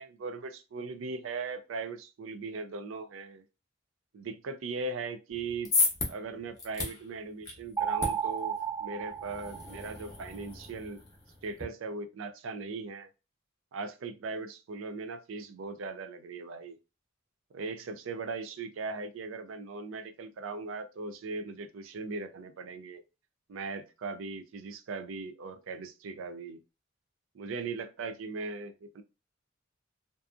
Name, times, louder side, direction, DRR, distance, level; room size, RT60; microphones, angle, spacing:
voice 1, 0.0-3.4 4.1-5.7 6.1-11.1 11.4-13.1 13.7-16.8 17.5-23.0 23.5-26.6 27.3-29.0, right 4 dB, 75° right, 10 dB, 0.4 m, -39 dB
sound 1, 5.3-11.6, left 3 dB, 15° left, 0.8 m, -35 dB
sound 2, 7.8-10.2, right 7 dB, 15° right, 0.4 m, -33 dB
2.6 x 2.4 x 2.3 m, 0.29 s
head